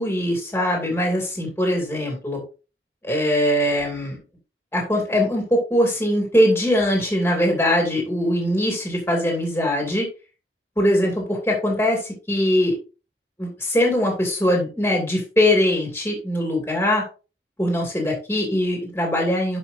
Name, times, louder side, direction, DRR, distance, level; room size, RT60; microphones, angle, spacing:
voice 1, 0.0-2.4 3.0-4.2 4.7-10.1 10.8-12.7 13.4-17.0 17.6-19.6, left 1 dB, 15° left, 0 dB, 2.4 m, -21 dB
11.5 x 5.3 x 2.6 m, 0.32 s
head